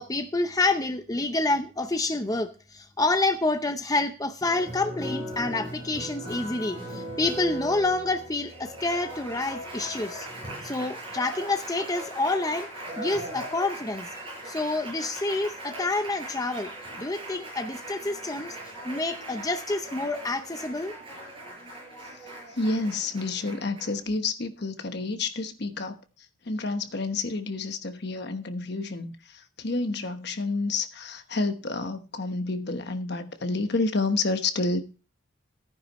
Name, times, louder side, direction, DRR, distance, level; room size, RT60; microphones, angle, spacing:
voice 1, 0.0-10.3 10.6-12.7 13.0-14.1 14.5-16.7 17.0-18.6 18.8-20.9, left 2 dB, 15° left, 0.6 m, -28 dB
Applause, 4.4-24.1, right 1 dB, 25° right, 6.6 m, -39 dB
voice 2, 22.1-34.8, left 3 dB, 55° left, 1.1 m, -29 dB
14.5 x 9.8 x 3.0 m
head